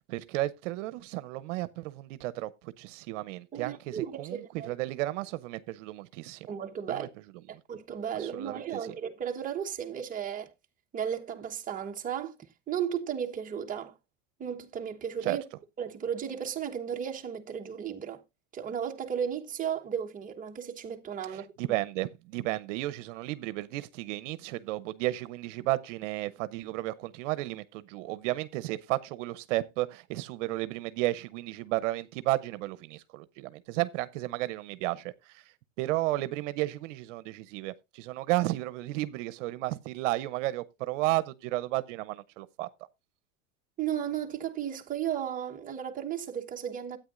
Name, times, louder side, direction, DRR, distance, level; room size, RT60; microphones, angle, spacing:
voice 1, 0.1-6.5 6.9-7.1 7.5-7.6 8.1-8.9 15.2-15.4 21.2-42.7, right 17 dB, 75° right, 0.8 m, -33 dB
voice 2, 3.5-4.7 6.5-7.1 7.5-10.5 10.9-12.4 12.7-13.9 14.4-15.4 15.8-18.2 18.5-21.4 43.8-47.0, right 8 dB, 20° right, 1.2 m, -34 dB
13.0 x 8.9 x 2.5 m
supercardioid pair, 130°, 37 cm